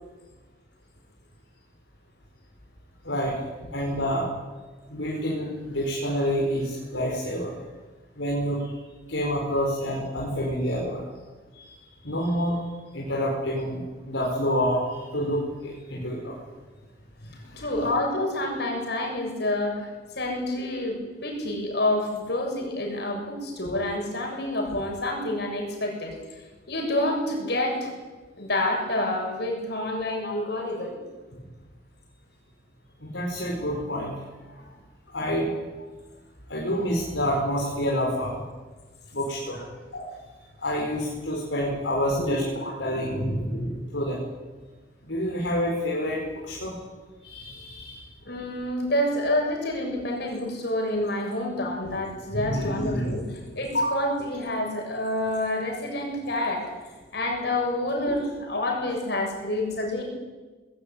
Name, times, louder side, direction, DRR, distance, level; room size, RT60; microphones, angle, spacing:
voice 1, 3.0-3.4 3.7-4.3 4.9-7.5 8.2-8.7 9.1-11.1 12.0-12.6 12.9-13.8 14.0-16.4 17.4-17.7 31.3-31.4 33.0-34.1 34.5-34.6 35.1-35.5 36.5-38.4 39.1-39.6 39.9-40.1 40.6-44.3 45.0-46.7 47.2-48.0 52.3-53.2 53.7-53.9, equal, 75° left, -2 dB, 4.9 m, -28 dB
voice 2, 17.6-27.9 28.4-30.9 42.2-42.5 48.2-53.2 53.6-56.7 57.1-60.0, left 1 dB, 60° left, 1 dB, 7.3 m, -28 dB
20.0 x 17.5 x 9.7 m, 1.3 s
head